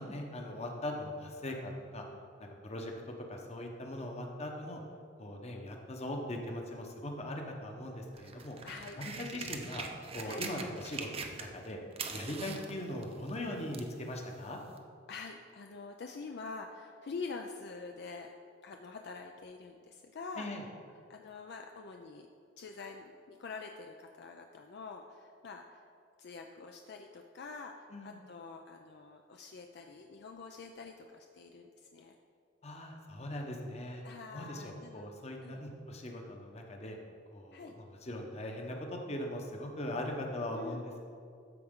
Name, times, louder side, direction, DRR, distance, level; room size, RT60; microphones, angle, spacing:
voice 1, 0.0-2.0 2.4-2.9 3.3-4.8 5.2-8.6 9.0-9.9 10.1-11.8 12.1-14.6 20.4-20.6 27.9-28.2 32.6-34.0 34.3-37.0 37.3-41.0, left 1 dB, 35° left, 2 dB, 0.9 m, -40 dB
sound 1, 8.1-11.7 11.9-14.0 14.8-14.9, right 5 dB, 30° right, 0.6 m, -42 dB
voice 2, 8.6-9.0 10.2-10.5 15.1-18.3 18.6-20.5 21.1-22.3 22.6-25.8 26.2-32.1 34.0-35.1 35.4-35.6 37.5-37.7 40.5-40.8, left 4 dB, 60° left, 3 dB, 0.4 m, -46 dB
13.0 x 4.6 x 3.7 m, 2.4 s
head